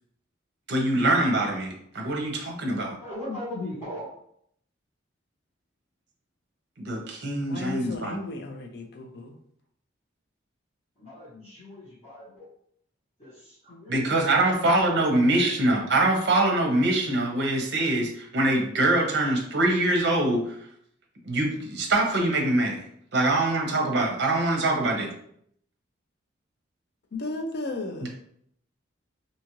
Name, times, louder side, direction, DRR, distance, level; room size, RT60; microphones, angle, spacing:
voice 1, 0.7-3.0 6.8-8.2 13.9-20.6 21.2-22.8 23.1-25.1 28.0-28.1, right 2 dB, 55° right, 1 dB, 0.6 m, -24 dB
voice 2, 3.0-4.1 11.0-12.5 13.2-14.1 14.4-15.2, left 1 dB, 35° left, -12 dB, 1.2 m, -39 dB
voice 3, 7.5-9.4 27.1-28.1, left 2 dB, 55° left, 4 dB, 0.4 m, -34 dB
2.7 x 2.4 x 2.9 m, 0.68 s
head